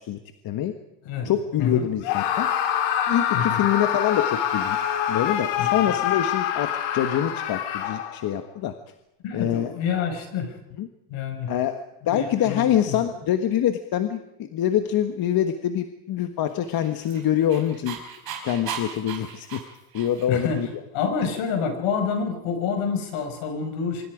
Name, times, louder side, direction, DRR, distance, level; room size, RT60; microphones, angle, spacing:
voice 1, 1.2-2.5 3.1-4.8 5.1-8.7 9.3-9.7 10.8-10.9 11.5-18.0 18.4-19.6 19.9-20.7, left 10 dB, 45° left, 7 dB, 1.5 m, -25 dB
Screaming, 2.0-8.3, left 10 dB, 85° left, 3.4 m, -25 dB
voice 2, 3.3-3.6 5.6-5.7 9.2-10.5 11.1-11.5 12.1-13.0 20.3-20.6 20.9-24.1, left 6 dB, 70° left, 5 dB, 6.0 m, -27 dB
Dog, 16.6-20.5, right 7 dB, 45° right, 5.3 m, -37 dB
25.0 x 24.0 x 5.1 m, 0.88 s
cardioid pair, 135°, 49 cm